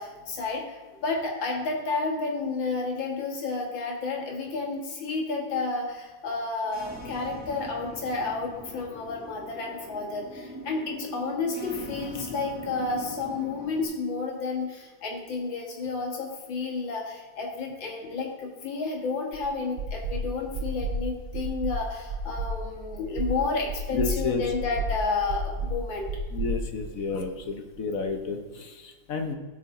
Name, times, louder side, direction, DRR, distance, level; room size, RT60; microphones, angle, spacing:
voice 1, 0.0-26.1, left 4 dB, 80° left, 0 dB, 2.5 m, -31 dB
sound 1, 6.6-13.8, equal, 5° right, 2.2 m, -41 dB
sound 2, 19.3-19.4 19.8-20.2 20.5-21.0 21.3-21.8 22.1-22.5 22.9-23.3 23.7-24.1 24.5-24.9 25.3-25.8 26.1-27.3, right 3 dB, 60° right, 1.9 m, -31 dB
voice 2, 23.9-24.5 26.3-29.3, left 4 dB, 55° left, 5 dB, 1.1 m, -31 dB
17.5 x 6.1 x 3.7 m, 1.2 s
omnidirectional pair, 2.1 m